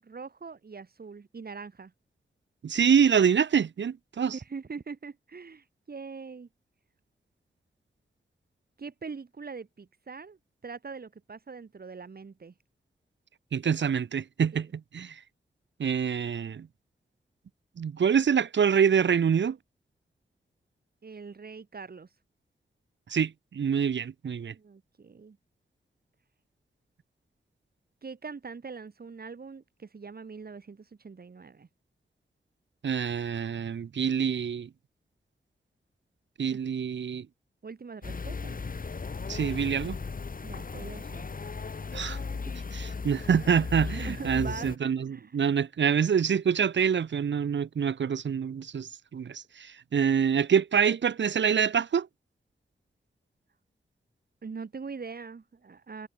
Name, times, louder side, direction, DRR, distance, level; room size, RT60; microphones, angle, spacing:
voice 1, 0.0-1.9 4.3-6.5 8.8-10.4 10.6-12.5 14.5-14.7 21.0-22.1 24.6-25.4 28.0-31.7 36.5-36.6 37.6-38.6 40.4-41.2 44.0-44.7 45.1-45.4 54.4-56.1, right 5 dB, 55° right, 6.8 m, -42 dB
voice 2, 2.6-4.4 13.5-15.2 15.8-16.7 17.8-19.6 23.1-24.5 32.8-34.7 36.4-37.3 39.3-40.0 41.9-42.2 42.7-52.1, right 7 dB, 85° right, 2.1 m, -26 dB
sound 1, 38.0-44.8, left 4 dB, 50° left, 4.5 m, -36 dB
wide cardioid pair, 95°, 18 cm